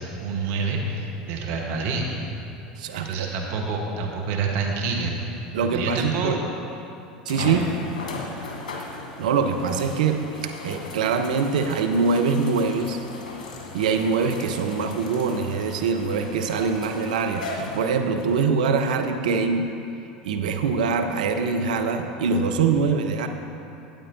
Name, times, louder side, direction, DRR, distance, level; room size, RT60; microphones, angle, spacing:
voice 1, 0.0-2.1 2.9-5.1 5.6-6.4 7.4-7.7, right 4 dB, 55° right, 0 dB, 1.2 m, -28 dB
voice 2, 2.8-3.3 5.5-6.4 7.3-7.6 9.2-13.0 13.7-19.7 20.2-23.3, right 5 dB, 70° right, 6 dB, 0.6 m, -23 dB
sound 1, 6.2-6.3 7.3-18.3 19.0-19.1 22.6-22.7, left 3 dB, 75° left, 1.2 m, -37 dB
12.5 x 8.8 x 2.7 m, 2.7 s
hypercardioid pair, 80°, 4 cm